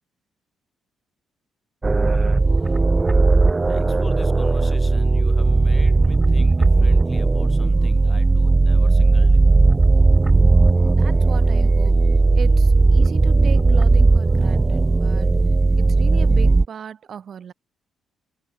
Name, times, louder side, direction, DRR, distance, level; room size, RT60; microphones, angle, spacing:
sound 1, 1.8-16.7, right 3 dB, 20° right, 0.3 m, -16 dB
voice 1, 2.5-2.8 3.7-9.5, left 3 dB, 25° left, 1.3 m, -42 dB
voice 2, 10.7-12.1 12.3-15.4 15.8-17.5, right 8 dB, 55° right, 1.5 m, -37 dB
cardioid pair, 90°, 0 cm